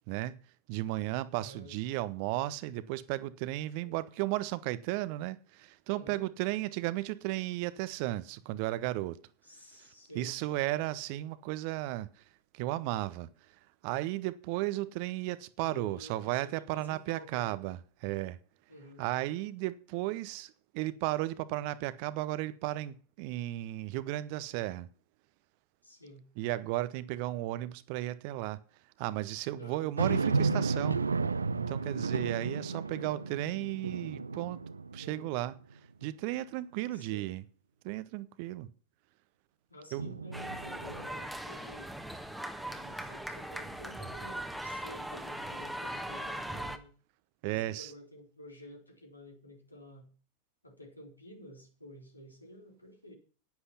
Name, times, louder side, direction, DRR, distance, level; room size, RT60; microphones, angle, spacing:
voice 1, 0.7-9.2 9.8-9.9 10.1-12.1 12.5-13.5 13.8-18.4 19.0-24.9 26.4-28.6 29.0-31.0 31.6-34.6 34.9-35.5 36.0-37.4 37.8-38.7 39.9-40.1 47.4-47.9, right 16 dB, 45° right, 0.8 m, -34 dB
voice 2, 1.3-1.7 3.8-4.0 5.9-6.3 9.4-10.4 15.6-17.6 18.7-19.0 25.8-26.3 29.6-29.9 32.5-33.3 35.0-35.3 36.9-37.3 39.7-42.0 42.6-46.9 47.5-50.1 50.6-53.1, left 1 dB, 85° left, 3.7 m, -51 dB
sound 1, 30.0-35.5 36.0-36.1 40.0-41.1, right 4 dB, 75° right, 0.6 m, -33 dB
sound 2, 40.3-46.8, right 1 dB, ahead, 1.4 m, -40 dB
10.5 x 10.0 x 5.6 m
figure-of-eight pair, 90°, 0 cm